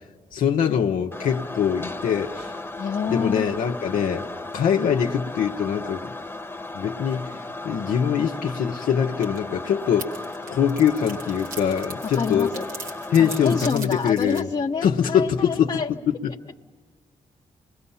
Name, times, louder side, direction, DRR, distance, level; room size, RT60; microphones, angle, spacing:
voice 1, 0.3-2.5 3.1-4.2 4.5-6.1 6.7-7.4 7.6-10.1 10.5-12.5 13.1-14.5 14.8-15.7 16.1-16.3, left 8 dB, 85° left, 1 dB, 0.9 m, -23 dB
sound 1, 1.1-13.7, left 2 dB, 15° left, 1.2 m, -36 dB
voice 2, 2.8-3.4 12.0-12.7 13.2-15.9, left 5 dB, 40° left, -1 dB, 0.9 m, -28 dB
sound 2, 9.2-9.4 9.6-14.4, right 3 dB, 85° right, 2.8 m, -39 dB
26.5 x 21.5 x 5.6 m, 1.5 s
cardioid pair, 65°, 14 cm